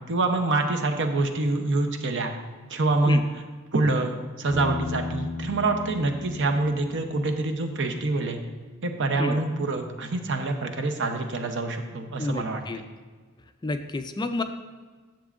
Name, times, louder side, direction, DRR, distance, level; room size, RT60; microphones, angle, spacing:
voice 1, 0.0-2.3 2.7-3.2 3.7-8.4 8.8-12.6, right 2 dB, 60° right, 5 dB, 0.8 m, -26 dB
Piano, 4.5-8.2, left 3 dB, 30° right, 1.4 m, -36 dB
voice 2, 12.2-12.8 13.6-14.4, left 2 dB, 20° left, 8 dB, 0.3 m, -29 dB
10.5 x 7.4 x 2.5 m, 1.4 s
head